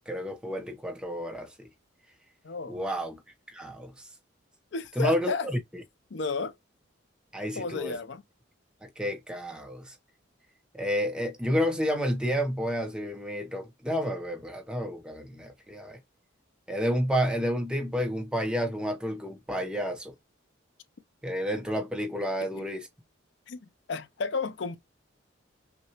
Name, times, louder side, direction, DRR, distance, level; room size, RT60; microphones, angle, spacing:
voice 1, 0.1-1.7 2.7-3.2 3.5-4.1 5.0-5.6 7.3-7.9 8.8-9.9 10.7-16.0 16.7-20.1 21.2-22.9, equal, 5° right, 0.8 m, -30 dB
voice 2, 2.4-2.8 4.7-5.5 6.1-6.5 7.5-8.2 23.5-24.8, left 4 dB, 60° left, 0.5 m, -32 dB
5.9 x 2.3 x 2.9 m
head